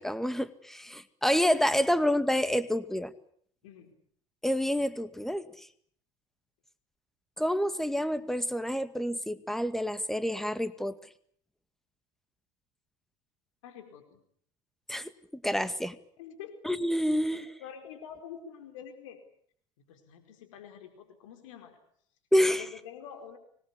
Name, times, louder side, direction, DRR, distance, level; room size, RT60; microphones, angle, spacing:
voice 1, 0.0-3.1 4.4-5.5 7.4-10.9 14.9-15.1 15.4-16.0 16.7-17.5 22.3-22.6, equal, ahead, 13 dB, 2.0 m, -28 dB
voice 2, 3.6-3.9 13.6-14.2 16.2-16.7 17.4-19.2 19.8-21.8 22.5-23.4, left 8 dB, 80° left, 7 dB, 4.6 m, -47 dB
25.0 x 21.0 x 8.3 m, 0.62 s
hypercardioid pair, 85°, 16 cm